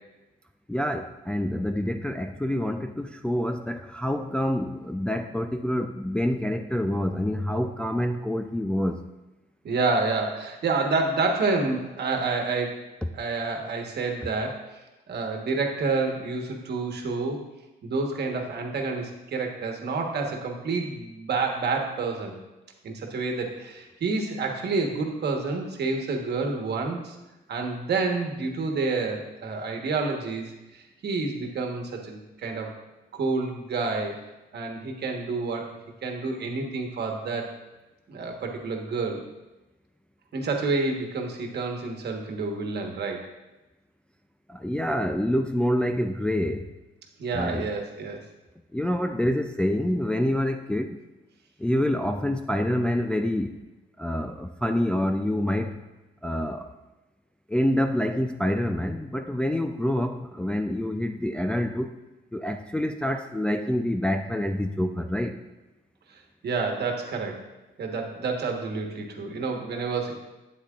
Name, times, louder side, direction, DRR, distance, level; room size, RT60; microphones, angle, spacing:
voice 1, 0.7-9.0 44.5-46.7 47.3-47.7 48.7-51.0 51.6-53.7 54.0-55.8 56.2-56.7 57.5-61.9 62.3-65.4, left 1 dB, 5° left, 5 dB, 0.3 m, -27 dB
voice 2, 9.6-12.8 13.1-14.8 15.1-17.4 17.8-22.4 22.8-27.2 27.5-32.7 33.1-34.2 34.5-35.7 36.0-37.5 38.1-39.2 40.3-43.2 47.2-48.2 66.4-67.4 67.8-70.2, right 3 dB, 55° right, 2 dB, 1.3 m, -29 dB
8.2 x 8.1 x 2.4 m, 1.0 s
cardioid pair, 90°, 20 cm